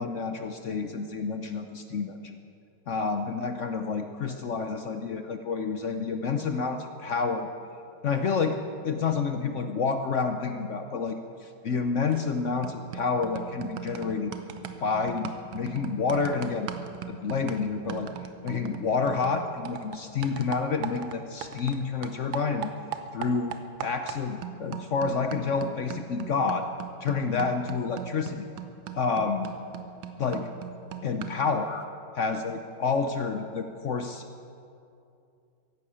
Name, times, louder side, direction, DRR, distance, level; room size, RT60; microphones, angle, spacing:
voice 1, 0.0-2.3 2.9-7.5 8.0-14.3 14.8-16.7 17.1-18.1 18.4-22.7 23.1-26.7 27.0-28.5 28.9-29.5 30.2-30.5 31.0-31.9 32.2-34.2, left 5 dB, 60° left, 7 dB, 0.7 m, -29 dB
sound 1, 12.1-12.4 12.6-21.8 22.0-31.5, right 9 dB, 85° right, 1.7 m, -40 dB
15.0 x 11.5 x 8.6 m, 2.5 s
omnidirectional pair, 2.2 m